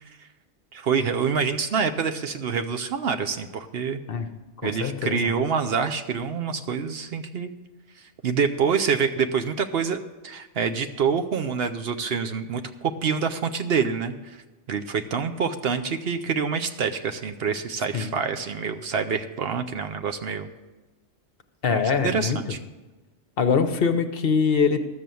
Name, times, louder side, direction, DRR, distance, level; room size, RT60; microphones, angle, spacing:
voice 1, 0.7-4.0 4.6-7.5 8.0-10.0 10.2-14.4 14.7-20.5 21.7-22.6, right 6 dB, 60° right, 7 dB, 0.8 m, -26 dB
voice 2, 4.6-5.3 17.9-18.1 21.6-22.4 23.4-24.8, left 5 dB, 55° left, 8 dB, 0.9 m, -23 dB
13.0 x 6.9 x 7.6 m, 1.2 s
omnidirectional pair, 1.2 m